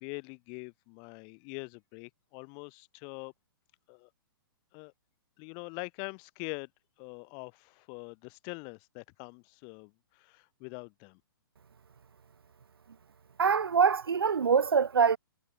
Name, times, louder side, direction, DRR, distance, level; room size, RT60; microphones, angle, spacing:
voice 1, 0.0-3.3 3.9-4.1 4.7-4.9 5.4-6.7 7.0-11.2, left 39 dB, 35° left, 4.7 m, -44 dB
voice 2, 13.4-15.2, right 6 dB, 80° right, 1.2 m, -24 dB
hypercardioid pair, 125°, 12 cm